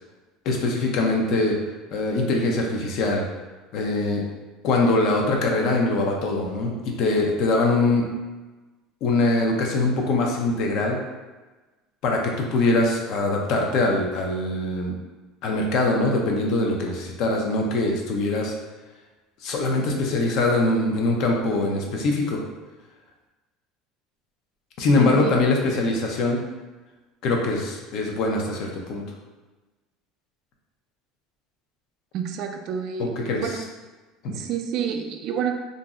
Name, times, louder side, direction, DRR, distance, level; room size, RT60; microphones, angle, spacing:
voice 1, 0.5-1.5 1.9-3.2 3.7-4.2 4.6-8.0 9.0-11.0 12.0-14.9 15.4-18.5 19.4-22.4 24.8-26.4 27.2-29.0 33.0-33.5, left 2 dB, 60° left, 0 dB, 0.6 m, -23 dB
voice 2, 25.0-25.3 32.1-33.6 34.3-35.5, right 7 dB, 55° right, 4 dB, 0.3 m, -29 dB
2.5 x 2.0 x 3.5 m, 1.2 s
supercardioid pair, 115°, 0 cm